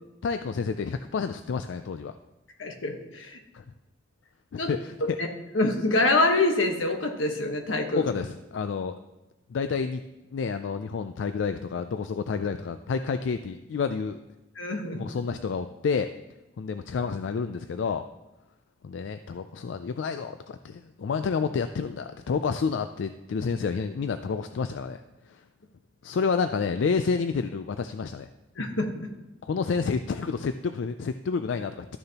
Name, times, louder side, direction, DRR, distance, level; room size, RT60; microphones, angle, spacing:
voice 1, 0.2-2.1 3.5-3.6 4.5-5.2 7.9-9.0 9.5-10.0 10.3-14.2 14.9-16.1 16.6-18.1 18.8-25.0 25.3-25.4 26.0-28.3 29.4-31.9, left 5 dB, 70° left, 9 dB, 0.4 m, -29 dB
voice 2, 2.6-3.4 4.6-4.7 5.5-8.1 14.6-15.0 28.6-28.9, left 2 dB, 85° left, 4 dB, 1.2 m, -25 dB
13.0 x 6.6 x 2.9 m, 1.1 s
head